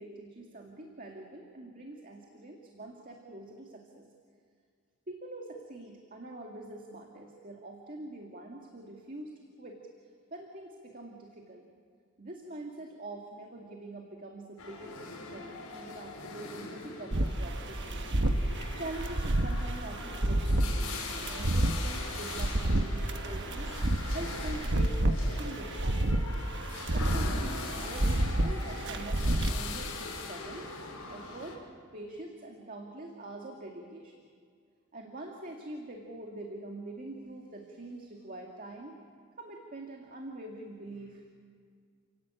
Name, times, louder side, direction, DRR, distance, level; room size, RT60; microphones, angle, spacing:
voice 1, 0.0-4.1 5.1-9.8 10.3-11.7 12.2-18.1 18.4-23.7 24.1-26.3 26.9-30.7 31.1-31.6 31.9-34.2 34.9-39.0 39.4-41.3, right 1 dB, 40° right, 1 dB, 2.1 m, -44 dB
sound 1, 14.6-31.6, left 3 dB, 75° left, 5.6 m, -41 dB
sound 2, 17.1-29.6, right 1 dB, 55° right, 1.2 m, -30 dB
29.5 x 17.0 x 8.9 m, 2.1 s
head